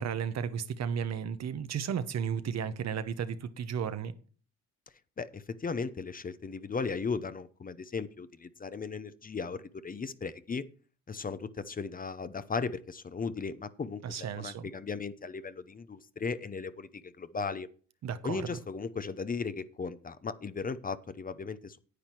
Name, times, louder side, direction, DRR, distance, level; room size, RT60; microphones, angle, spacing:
voice 1, 0.0-4.1 14.0-14.7 18.0-18.5, right 7 dB, 60° right, 1.0 m, -34 dB
voice 2, 5.2-10.6 11.1-17.7 18.2-21.8, left 5 dB, 30° left, 0.8 m, -36 dB
9.8 x 8.8 x 4.5 m
cardioid pair, 90°, 30 cm